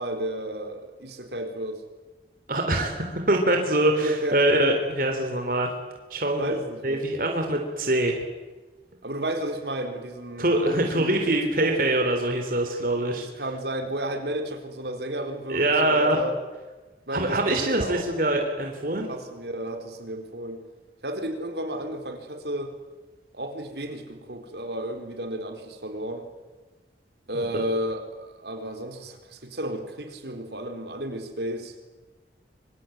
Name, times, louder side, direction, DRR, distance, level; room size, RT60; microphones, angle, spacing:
voice 1, 0.0-1.8 4.0-4.4 6.4-7.0 9.0-11.8 13.1-16.3 17.1-18.0 18.9-20.6 21.0-22.7 23.3-26.3 27.3-31.7, right 1 dB, 70° right, 5 dB, 4.1 m, -32 dB
voice 2, 2.5-5.7 6.1-6.5 6.8-8.2 10.4-13.3 15.5-16.2 17.1-19.1 27.3-27.5, right 1 dB, 50° right, 3 dB, 3.5 m, -24 dB
25.5 x 24.5 x 9.2 m, 1.2 s
head